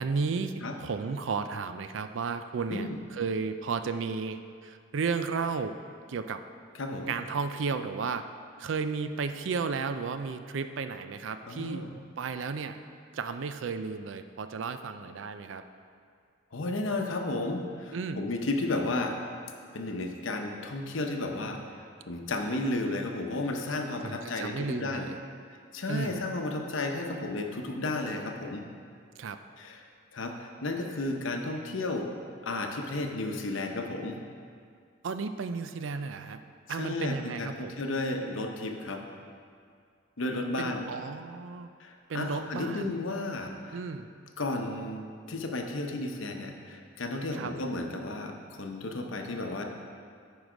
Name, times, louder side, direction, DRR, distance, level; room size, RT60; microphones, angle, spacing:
voice 1, 0.0-0.5 0.8-5.8 6.1-6.4 7.1-8.2 8.6-11.8 12.2-12.8 13.1-15.6 17.9-18.2 24.0-25.2 25.9-26.2 29.2-29.4 35.0-36.4 36.7-37.7 40.6-41.7 42.1-43.0 43.7-44.1 47.3-47.5, right 5 dB, 70° right, 9 dB, 0.4 m, -33 dB
voice 2, 6.8-7.1 11.4-11.9 16.5-19.1 19.7-25.1 25.7-28.7 29.6-29.8 30.1-32.1 32.4-34.2 36.7-39.0 40.2-40.8 41.8-43.8 44.4-49.6, left 2 dB, 75° left, 3 dB, 0.8 m, -33 dB
9.3 x 4.8 x 5.0 m, 2.2 s
head